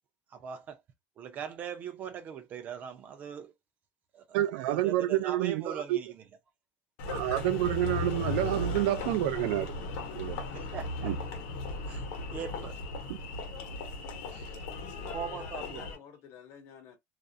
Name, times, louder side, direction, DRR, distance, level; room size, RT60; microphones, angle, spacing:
voice 1, 0.3-0.8 1.2-3.5 4.1-4.2 4.6-6.2 10.5-11.1 11.9-12.7 15.1-15.9, right 8 dB, 30° right, 0.5 m, -40 dB
voice 2, 4.3-6.0 7.1-9.7 10.1-10.3 11.0-11.2, right 14 dB, 90° right, 0.4 m, -28 dB
Engine, 7.0-16.0, left 3 dB, 70° left, 0.9 m, -36 dB
voice 3, 15.0-17.0, left 7 dB, 45° left, 0.7 m, -51 dB
2.4 x 2.0 x 2.5 m
cardioid pair, 180°, 6 cm